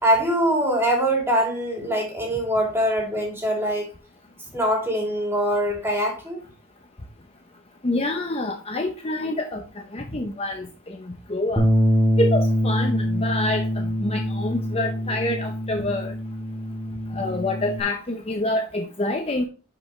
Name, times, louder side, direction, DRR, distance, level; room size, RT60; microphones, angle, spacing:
voice 1, 0.0-3.9 4.5-6.4, right 1 dB, 10° right, -1 dB, 3.2 m, -23 dB
voice 2, 7.8-9.6 9.9-11.7 12.2-16.1 17.1-19.4, left 2 dB, 25° left, 4 dB, 0.7 m, -27 dB
Bass guitar, 11.6-17.8, equal, 10° left, 1.9 m, -24 dB
11.0 x 5.4 x 3.3 m, 0.34 s
head